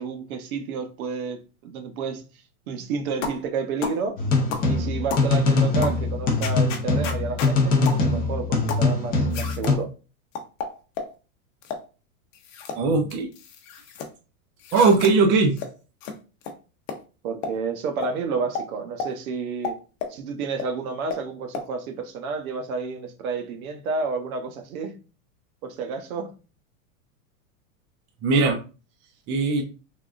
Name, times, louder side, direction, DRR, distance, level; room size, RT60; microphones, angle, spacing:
voice 1, 0.0-2.2 2.7-4.2 4.7-9.9 17.2-19.8 20.1-25.0 25.6-26.3, right 5 dB, 80° right, 0.8 m, -30 dB
sound 1, 3.2-3.4 3.8-4.0 4.5-4.7 5.1-5.3 5.8-6.0 6.4-7.5 7.9-8.0 8.7-8.9 9.3-9.8 10.4-11.1 11.6-11.9 12.3-12.8 13.1-14.1 14.6-15.1 15.6-15.7 16.0-16.1 16.4-16.5 16.9-17.0 17.4-17.6 18.0-18.1 18.6-18.7 19.0-19.1 19.6-20.2 20.6-20.7 21.1-21.2 21.5-21.7, left 5 dB, 60° left, 0.7 m, -32 dB
sound 2, 4.2-9.8, left 3 dB, 20° left, 0.6 m, -22 dB
voice 2, 12.8-13.3 14.7-15.5 28.2-28.6 29.3-29.6, right 4 dB, 30° right, 0.5 m, -19 dB
3.5 x 2.3 x 2.4 m
supercardioid pair, 140°, 42 cm